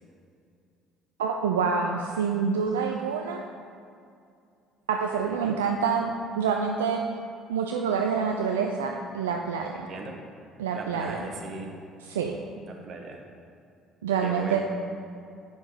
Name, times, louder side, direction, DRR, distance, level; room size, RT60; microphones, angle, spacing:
voice 1, 1.2-3.4 4.9-7.0 7.5-9.9 10.6-11.2 12.1-12.4 14.0-14.6, right 6 dB, 80° right, 2 dB, 0.4 m, -27 dB
voice 2, 9.7-10.1 10.7-11.7 12.7-13.2 14.2-14.6, right 3 dB, 50° right, 2 dB, 1.3 m, -38 dB
7.1 x 5.8 x 4.9 m, 2.4 s
figure-of-eight pair, 55°, 0 cm